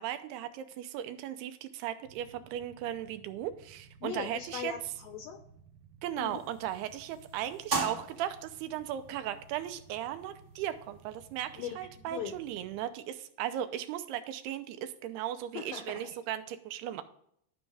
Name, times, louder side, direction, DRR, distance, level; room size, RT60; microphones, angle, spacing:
voice 1, 0.0-4.7 6.0-17.0, right 11 dB, 85° right, 9 dB, 2.7 m, -37 dB
Motorcycle / Idling, 2.1-12.8, right 5 dB, 70° right, 2.7 m, -57 dB
voice 2, 4.0-5.4 6.2-6.4 11.6-12.3 15.5-16.2, left 9 dB, 75° left, 6 dB, 2.2 m, -40 dB
sound 1, 6.2-11.6, right 4 dB, 40° right, 1.3 m, -41 dB
12.5 x 5.3 x 3.4 m, 0.68 s
omnidirectional pair, 4.6 m